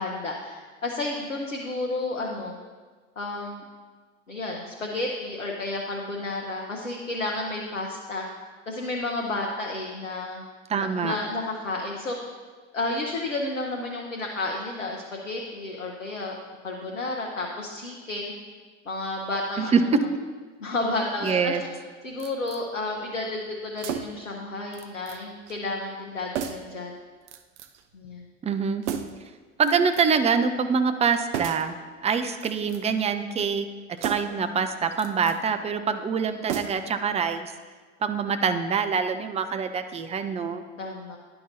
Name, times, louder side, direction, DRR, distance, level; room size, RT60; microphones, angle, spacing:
voice 1, 0.0-2.5 3.2-3.6 4.3-8.2 8.7-10.4 10.7-12.3 12.7-16.4 16.6-18.3 18.9-19.7 20.6-21.6 22.0-26.9 27.9-28.3 40.8-41.2, left 2 dB, 90° left, 0 dB, 0.7 m, -31 dB
voice 2, 10.7-11.1 19.6-19.8 21.2-21.6 28.4-28.8 29.6-31.7 32.0-33.7 34.0-37.5 38.0-40.6, right 6 dB, 15° right, 8 dB, 0.5 m, -25 dB
sound 1, 22.2-22.6 23.8-24.3 24.7-25.2 25.5-25.6 26.3-26.8 27.3-27.8 28.8-29.3 29.6-30.2 31.3-31.7 32.3-33.0 34.0-34.4 34.9-35.4 36.5-37.0 37.3-37.4, right 9 dB, 65° right, 0.6 m, -34 dB
11.0 x 5.8 x 2.6 m, 1.4 s
figure-of-eight pair, 65°, 37 cm